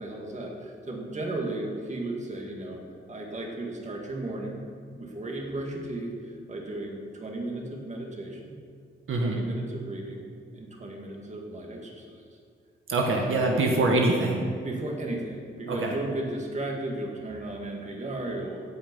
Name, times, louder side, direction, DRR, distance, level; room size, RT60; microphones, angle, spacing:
voice 1, 0.0-2.8 3.1-4.7 4.9-8.5 9.2-10.2 10.5-12.1 13.5-13.7 14.6-18.6, right 2 dB, 35° right, 0 dB, 2.1 m, -35 dB
voice 2, 12.9-14.4 15.7-15.9, right 2 dB, 85° right, 0 dB, 1.4 m, -24 dB
16.5 x 5.7 x 5.4 m, 2.1 s
wide cardioid pair, 100°, 21 cm